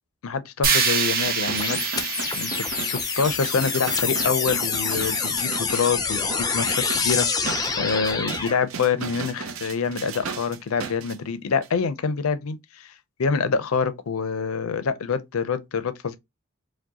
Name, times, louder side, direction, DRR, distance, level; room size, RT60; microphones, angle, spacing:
voice 1, 0.2-1.8 2.3-12.9 13.2-16.2, left 5 dB, 85° left, 0.5 m, -26 dB
sound 1, 0.6-4.7, right 5 dB, 45° right, 0.8 m, -27 dB
sound 2, 1.2-11.2 11.6-11.7, right 5 dB, 75° right, 0.6 m, -36 dB
sound 3, 1.6-8.6, left 5 dB, 20° left, 0.5 m, -26 dB
4.7 x 2.2 x 2.8 m
head